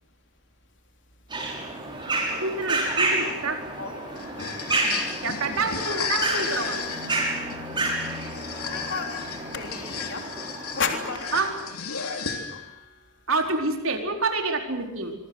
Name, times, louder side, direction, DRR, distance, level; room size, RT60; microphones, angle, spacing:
sound 1, 1.3-11.7, right 2 dB, 20° right, 6.5 m, -30 dB
voice 1, 2.4-3.6 5.2-7.0 11.3-11.5 13.3-15.1, right 3 dB, 65° right, 4 dB, 4.4 m, -27 dB
voice 2, 3.8-4.5 8.7-9.2 9.5-10.2 10.8-11.5, left 5 dB, 55° left, 4 dB, 3.6 m, -32 dB
sound 2, 4.2-12.8, left 6 dB, 85° left, 3.3 m, -34 dB
sound 3, 5.2-9.7, left 4 dB, 5° left, 6.1 m, -43 dB
25.5 x 24.5 x 8.1 m, 0.87 s
head